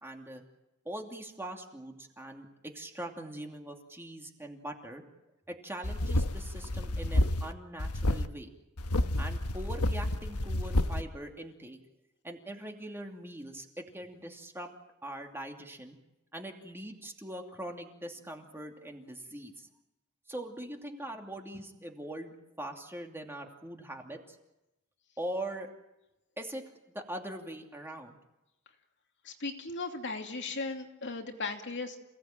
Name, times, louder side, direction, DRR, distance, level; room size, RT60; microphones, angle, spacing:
voice 1, 0.0-0.4 0.8-2.5 2.7-5.0 5.5-8.5 9.2-11.8 12.2-14.7 15.0-16.0 16.3-19.7 20.3-24.4 25.2-25.7 26.4-26.6 26.9-28.2, right 1 dB, 10° right, 3 dB, 2.7 m, -42 dB
sound 1, 5.8-7.5 7.8-8.3 8.8-11.0, left 1 dB, 85° left, 1.3 m, -29 dB
voice 2, 29.2-32.0, left 3 dB, 55° left, 4 dB, 2.7 m, -37 dB
28.0 x 18.0 x 9.0 m, 0.93 s
head